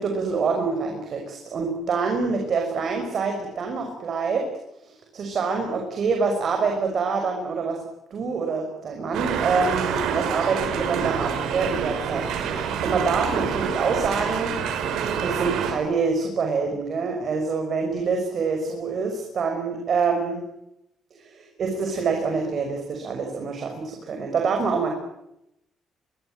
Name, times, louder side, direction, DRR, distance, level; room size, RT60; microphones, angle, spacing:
voice 1, 0.0-4.5 4.8-7.8 8.1-14.5 15.2-20.4 21.2-24.9, right 4 dB, 45° right, 3 dB, 6.0 m, -26 dB
sound 1, 9.1-15.7, right 7 dB, 90° right, 5.5 m, -27 dB
24.5 x 22.0 x 9.0 m, 0.83 s
cardioid pair, 150°, 0 cm